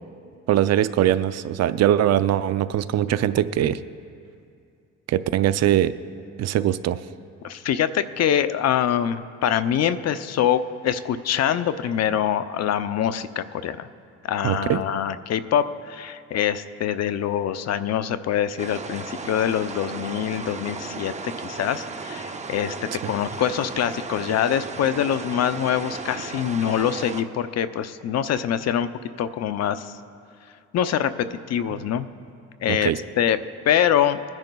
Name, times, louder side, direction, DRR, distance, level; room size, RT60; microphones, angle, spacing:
voice 1, 0.5-3.8 5.1-5.9 6.4-7.0 14.4-14.8 23.0-23.1 32.7-33.0, right 11 dB, 60° right, 14 dB, 0.4 m, -21 dB
voice 2, 7.4-13.9 14.2-28.9 29.2-30.0 30.7-32.1 32.6-33.4 33.7-34.2, left 9 dB, 60° left, 12 dB, 0.5 m, -24 dB
sound 1, 18.6-27.2, right 4 dB, 25° right, 0.7 m, -35 dB
22.0 x 10.5 x 2.3 m, 2.4 s
cardioid pair, 90°, 30 cm